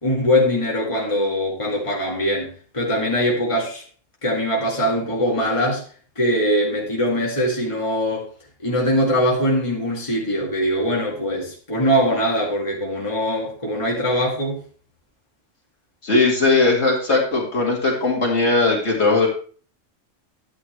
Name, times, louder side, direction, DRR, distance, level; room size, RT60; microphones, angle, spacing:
voice 1, 0.0-2.5 2.7-3.8 4.2-5.8 6.2-8.3 8.6-14.6, equal, 25° left, -3 dB, 2.1 m, -22 dB
voice 2, 16.0-19.3, left 3 dB, 55° left, -1 dB, 2.8 m, -18 dB
11.0 x 9.0 x 3.2 m, 0.41 s
omnidirectional pair, 1.3 m